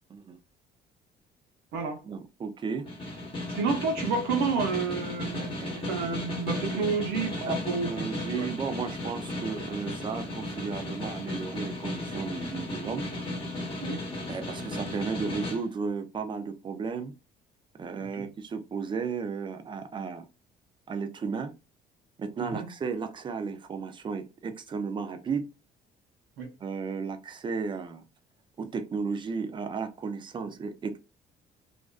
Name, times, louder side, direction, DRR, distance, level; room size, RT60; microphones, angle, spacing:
voice 1, 2.0-2.9 5.6-5.9 6.7-6.8 7.4-13.1 14.3-17.1 17.8-20.3 20.9-21.5 22.2-25.5 26.6-28.0 28.6-31.0, right 5 dB, 30° right, 0.4 m, -34 dB
Snare drum, 2.9-15.6, left 1 dB, 30° left, 1.0 m, -35 dB
voice 2, 3.5-7.9 8.2-8.5 13.8-14.0 18.2-18.3 22.4-22.6 26.4-26.5, right 4 dB, 85° right, 0.7 m, -30 dB
2.4 x 2.2 x 2.3 m
cardioid pair, 110°, 17 cm